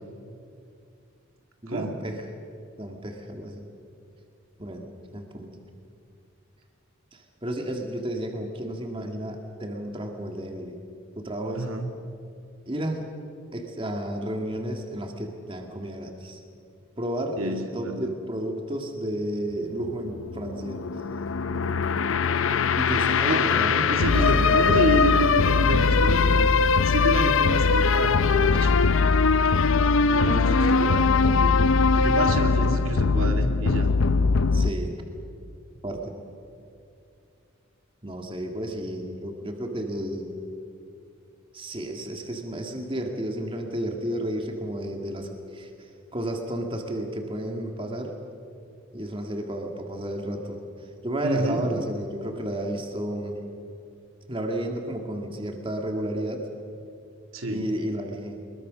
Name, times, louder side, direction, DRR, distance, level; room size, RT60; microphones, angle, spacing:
voice 1, 1.6-2.2 2.8-3.6 4.6-5.6 7.1-10.8 11.2-11.7 12.7-13.1 13.5-16.4 17.0-20.8 22.8-24.9 30.7-30.9 34.5-35.0 35.8-36.1 38.0-40.3 41.5-48.2 48.9-50.6 51.0-53.4 54.3-56.5 57.5-58.4, right 1 dB, 25° right, 3 dB, 1.9 m, -32 dB
voice 2, 11.5-11.9 17.4-18.1 23.3-23.5 23.9-26.5 26.8-28.7 30.1-31.5 31.9-33.9 51.2-51.7 57.3-57.7, right 1 dB, 85° right, 4 dB, 2.2 m, -28 dB
sound 1, 19.5-34.7, left 4 dB, 70° left, 0.6 m, -21 dB
24.0 x 21.5 x 6.3 m, 2.5 s
head